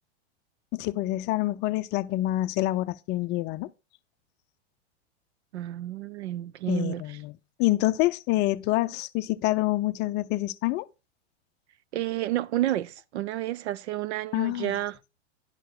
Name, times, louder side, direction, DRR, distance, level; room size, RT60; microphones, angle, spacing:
voice 1, 0.7-3.7 6.7-10.9 14.3-14.7, left 17 dB, 30° left, 0.5 m, -27 dB
voice 2, 5.5-7.2 11.9-15.0, right 14 dB, 70° right, 0.7 m, -30 dB
11.5 x 4.6 x 5.9 m
hypercardioid pair, 125°, 34 cm